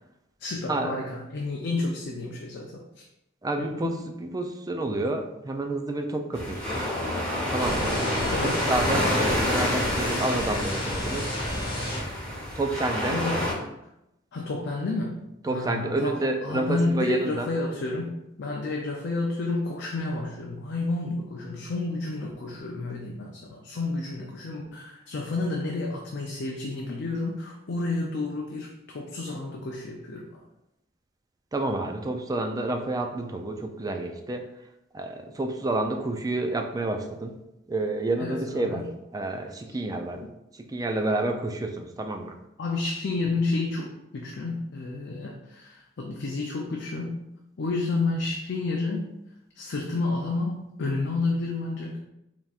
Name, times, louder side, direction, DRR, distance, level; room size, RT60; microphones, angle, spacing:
voice 1, 0.4-3.0 3.6-4.0 8.3-9.1 13.1-13.6 14.3-15.2 15.5-30.4 38.2-38.9 40.1-40.3 42.6-47.2 47.6-49.1 49.6-52.0, left 3 dB, 60° left, 0 dB, 0.4 m, -30 dB
voice 2, 3.4-6.9 7.5-8.0 8.4-11.3 12.6-13.2 15.4-17.5 31.5-34.5 34.9-37.4 37.7-38.9 39.1-40.2 40.5-42.4, right 2 dB, 20° right, 4 dB, 0.3 m, -29 dB
sound 1, 6.3-13.5, left 1 dB, 5° left, 1.3 m, -28 dB
sound 2, 7.6-12.0, left 1 dB, 25° left, 1.2 m, -31 dB
4.2 x 3.5 x 2.4 m, 0.87 s
head